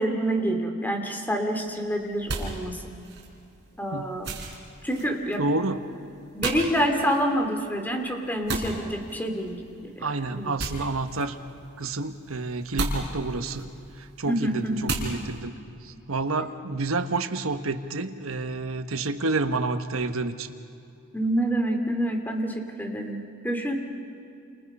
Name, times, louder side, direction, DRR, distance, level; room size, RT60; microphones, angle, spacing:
voice 1, 0.0-3.0 3.8-4.3 4.8-5.5 6.3-9.6 9.8-10.5 14.3-14.9 21.1-23.7, right 1 dB, 10° left, 4 dB, 2.7 m, -27 dB
sound 1, 1.6-15.4, right 2 dB, 55° right, 5.1 m, -37 dB
voice 2, 5.4-5.8 10.0-11.4 11.8-13.7 14.0-15.5 15.8-20.5, right 3 dB, 90° right, 8 dB, 1.4 m, -29 dB
29.5 x 29.0 x 5.6 m, 2.7 s
head